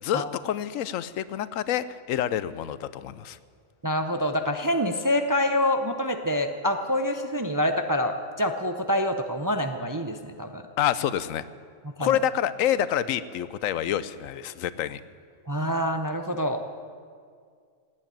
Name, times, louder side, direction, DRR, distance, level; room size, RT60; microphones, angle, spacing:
voice 1, 0.0-3.4 10.8-11.4 12.0-15.0, left 10 dB, 85° left, 16 dB, 1.0 m, -27 dB
voice 2, 3.8-10.6 12.0-12.2 15.5-16.6, left 1 dB, 25° right, 6 dB, 0.4 m, -26 dB
17.5 x 8.7 x 8.9 m, 2.1 s
omnidirectional pair, 1.3 m